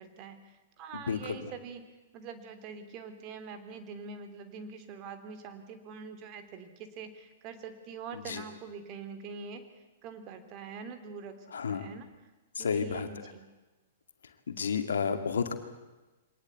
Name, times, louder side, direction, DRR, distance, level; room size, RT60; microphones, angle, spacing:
voice 1, 0.0-1.9 2.1-9.6 10.0-11.3 11.7-12.1 12.6-13.5, right 5 dB, 35° right, 8 dB, 3.0 m, -44 dB
voice 2, 1.1-1.5 8.3-8.4 11.5-11.9 12.6-13.1 14.5-15.6, left 6 dB, 70° left, 7 dB, 2.2 m, -31 dB
24.0 x 19.0 x 8.2 m, 1.1 s
figure-of-eight pair, 110°, 0 cm